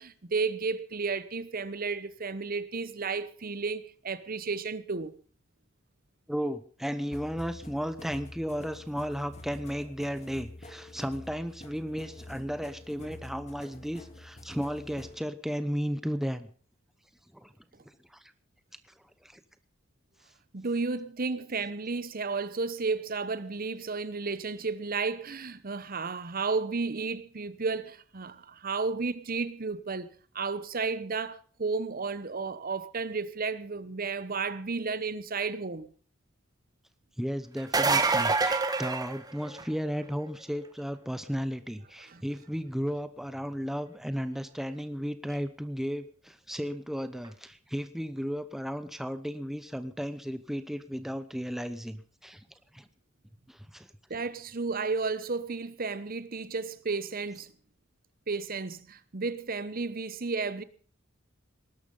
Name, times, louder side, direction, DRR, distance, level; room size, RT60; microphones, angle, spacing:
voice 1, 0.0-5.1 20.5-35.9 42.1-42.2 54.1-57.5 58.3-60.6, right 4 dB, 45° right, 0.9 m, -33 dB
voice 2, 6.3-16.5 17.3-17.5 18.1-18.2 19.2-19.4 37.2-52.4 52.7-52.9 53.5-53.9, equal, ahead, 0.9 m, -34 dB
sound 1, 7.1-15.2, left 1 dB, 35° left, 2.4 m, -47 dB
sound 2, 37.6-39.8 45.3-45.4 47.2-47.3, right 3 dB, 20° right, 1.4 m, -26 dB
19.5 x 12.0 x 5.4 m
head